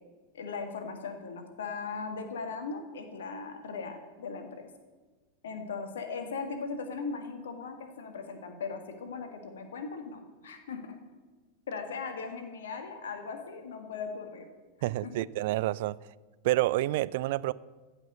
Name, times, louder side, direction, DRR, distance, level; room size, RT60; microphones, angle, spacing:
voice 1, 0.3-4.7 5.4-11.0 11.7-14.5 14.8-15.1, left 5 dB, 60° left, 6 dB, 1.7 m, -38 dB
voice 2, 14.8-16.0 16.4-17.5, right 17 dB, 50° right, 19 dB, 0.3 m, -28 dB
14.0 x 6.0 x 8.1 m, 1.3 s
figure-of-eight pair, 90°, 0 cm